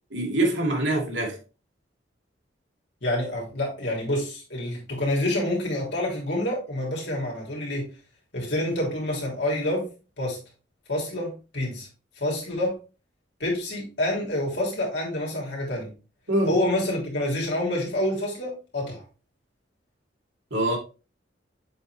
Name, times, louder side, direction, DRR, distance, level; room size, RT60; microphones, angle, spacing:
voice 1, 0.1-1.4 16.3-16.5 20.5-20.8, right 1 dB, 85° right, 2.5 m, -24 dB
voice 2, 3.0-7.9 8.3-9.9 10.2-10.4 10.9-11.9 12.1-12.8 13.4-15.9 16.5-19.0, left 1 dB, 65° left, 3.2 m, -27 dB
7.5 x 4.3 x 3.4 m
head